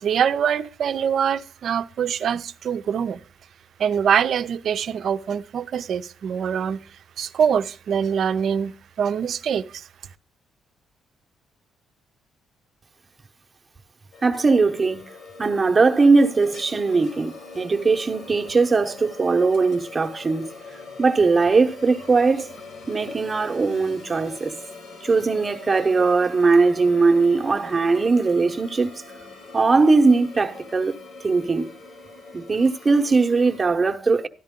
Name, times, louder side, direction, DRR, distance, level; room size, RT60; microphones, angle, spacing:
voice 1, 0.0-3.2 3.8-6.8 7.2-8.7 9.0-9.8, right 8 dB, 60° right, 0.6 m, -24 dB
sound 1, 14.1-33.7, left 3 dB, 70° left, 3.3 m, -42 dB
voice 2, 14.2-15.0 15.4-20.5 21.0-22.5 22.9-24.6 25.0-29.0 29.5-31.7 32.3-34.3, right 4 dB, 30° right, 1.0 m, -20 dB
13.0 x 10.5 x 3.7 m
cardioid pair, 90°, 0 cm